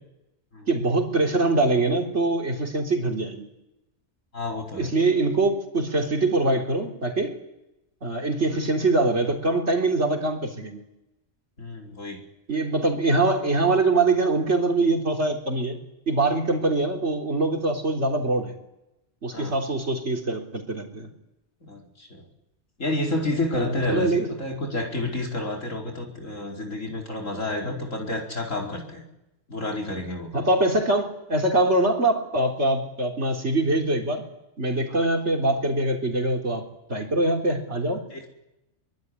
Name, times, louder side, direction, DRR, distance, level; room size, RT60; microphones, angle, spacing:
voice 1, 0.7-3.5 4.8-7.3 8.0-10.8 12.5-15.8 16.1-18.6 19.2-21.1 23.6-24.3 30.3-34.2 34.6-36.6 36.9-38.0, right 2 dB, 60° right, 1 dB, 4.0 m, -23 dB
voice 2, 4.3-4.9 11.6-12.2 19.3-19.5 21.7-22.2 22.8-29.0 29.5-30.5 38.1-38.3, left 2 dB, 70° left, 0 dB, 5.1 m, -30 dB
23.5 x 23.0 x 9.8 m, 0.91 s
omnidirectional pair, 1.3 m